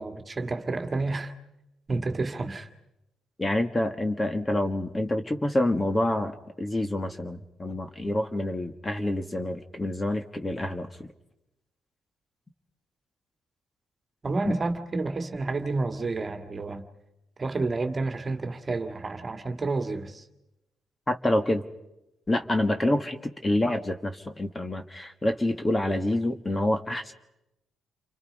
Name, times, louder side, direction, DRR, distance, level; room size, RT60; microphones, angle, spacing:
voice 1, 0.0-1.3 1.9-2.7 14.2-16.8 17.4-20.2, right 3 dB, 30° right, 2.0 m, -30 dB
voice 2, 3.4-10.9 14.4-14.5 21.1-21.6 22.3-27.1, left 1 dB, 20° left, 1.6 m, -27 dB
29.5 x 24.5 x 5.3 m
cardioid pair, 90°, 0 cm